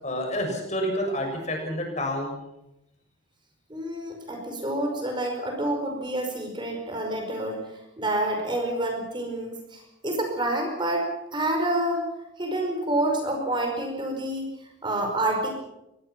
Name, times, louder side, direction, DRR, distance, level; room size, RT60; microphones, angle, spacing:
voice 1, 0.0-2.3, equal, 35° left, 3 dB, 6.9 m, -28 dB
voice 2, 3.7-7.7 8.0-12.0 12.4-14.5 14.8-15.5, right 1 dB, 25° right, 3 dB, 5.0 m, -28 dB
25.0 x 19.5 x 6.0 m, 0.88 s
head